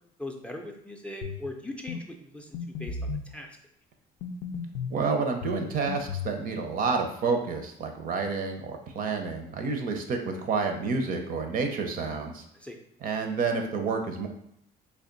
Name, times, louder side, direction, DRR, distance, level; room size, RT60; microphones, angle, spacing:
voice 1, 0.2-3.5 12.5-12.8, left 1 dB, 5° left, 2 dB, 0.4 m, -40 dB
sound 1, 1.2-1.5 1.9-2.0 2.5-3.3 4.2-5.0 5.4-6.4, left 5 dB, 90° left, 0.4 m, -34 dB
voice 2, 4.9-12.4 13.0-14.3, right 4 dB, 55° right, 5 dB, 0.6 m, -29 dB
3.4 x 2.4 x 3.8 m, 0.71 s
cardioid pair, 110°, 17 cm